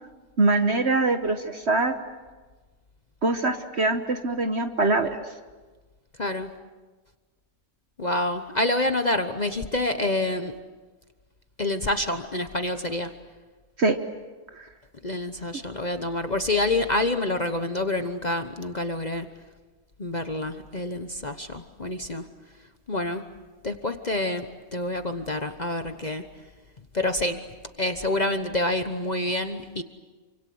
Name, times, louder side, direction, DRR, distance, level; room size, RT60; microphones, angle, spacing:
voice 1, 0.4-1.9 3.2-5.2 13.8-14.0 14.6-14.7, right 2 dB, 50° right, 7 dB, 1.4 m, -23 dB
voice 2, 6.2-6.5 8.0-10.5 11.6-13.1 15.0-19.3 20.0-22.3 22.9-23.3 23.6-26.3 26.9-27.4 27.8-29.8, left 2 dB, 30° left, 7 dB, 1.1 m, -27 dB
28.0 x 25.5 x 7.9 m, 1.3 s
omnidirectional pair, 1.5 m